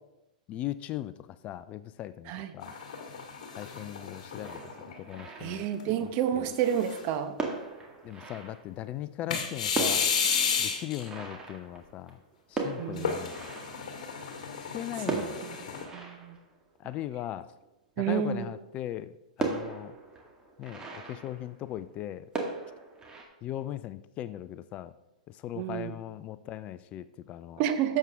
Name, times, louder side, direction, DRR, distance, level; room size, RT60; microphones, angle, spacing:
voice 1, 0.5-2.7 3.6-4.6 5.0-5.6 6.4-6.5 8.0-10.1 10.6-12.2 12.5-13.4 14.7-15.4 16.8-17.5 18.0-19.1 19.4-19.9 20.6-22.3 23.4-24.9 25.3-27.6, left 12 dB, 30° left, 15 dB, 0.4 m, -38 dB
sound 1, 2.6-5.2 5.7-5.8 6.5-7.2 9.3-11.1 13.0-15.8, left 6 dB, 55° left, 2.0 m, -32 dB
sound 2, 4.4-6.2 7.0-7.1 7.4-9.1 9.4-9.5 9.7-14.5 15.0-17.6 18.2-18.3 18.6-18.7 19.4-22.0 22.3-23.2, right 3 dB, 15° right, 1.9 m, -38 dB
voice 2, 5.4-7.3 12.8-13.1 15.1-15.6 15.9-16.4 18.0-18.5 25.5-26.0 27.6-28.0, right 9 dB, 40° right, 9 dB, 1.0 m, -30 dB
12.0 x 7.5 x 3.6 m, 0.92 s
hypercardioid pair, 110°, 4 cm